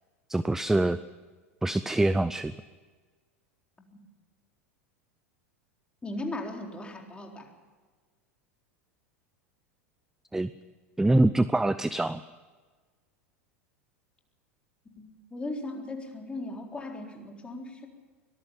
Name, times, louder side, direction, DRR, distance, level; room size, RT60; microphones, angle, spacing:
voice 1, 0.3-1.0 1.6-2.5 10.3-10.5 11.0-12.2, right 2 dB, 5° right, 15 dB, 0.6 m, -24 dB
voice 2, 6.0-7.5 15.0-17.9, left 2 dB, 15° left, 2 dB, 4.0 m, -37 dB
24.5 x 18.5 x 5.7 m, 1.4 s
figure-of-eight pair, 85°, 8 cm